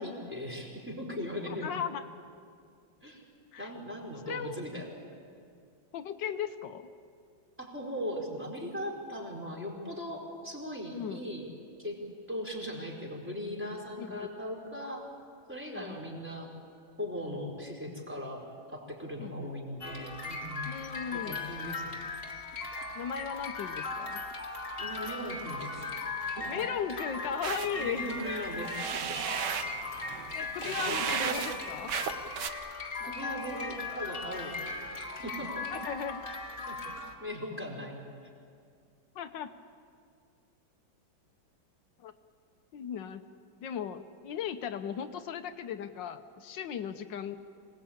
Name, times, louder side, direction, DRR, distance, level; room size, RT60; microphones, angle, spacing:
voice 1, 0.0-1.7 3.0-3.2 3.6-4.9 7.6-11.5 11.8-15.1 15.5-16.5 17.0-20.7 21.1-22.1 24.8-25.9 26.4-26.6 27.7-29.5 30.6-31.5 33.0-35.7 36.7-36.9 37.2-38.0, equal, 5° right, -1 dB, 4.3 m, -39 dB
voice 2, 1.6-2.0 3.5-3.7 4.2-4.6 5.9-6.8 10.9-11.2 14.0-14.3 15.7-16.0 19.2-19.5 20.6-21.5 22.9-24.2 26.5-28.0 30.3-31.9 35.7-36.3 39.1-39.5 42.0-42.1 42.7-43.2 43.6-47.4, left 8 dB, 80° left, 8 dB, 1.6 m, -37 dB
sound 1, 19.8-37.2, left 3 dB, 30° left, 2.1 m, -38 dB
sound 2, 27.4-32.5, right 8 dB, 70° right, 1.6 m, -35 dB
26.0 x 19.5 x 8.7 m, 2.2 s
omnidirectional pair, 2.0 m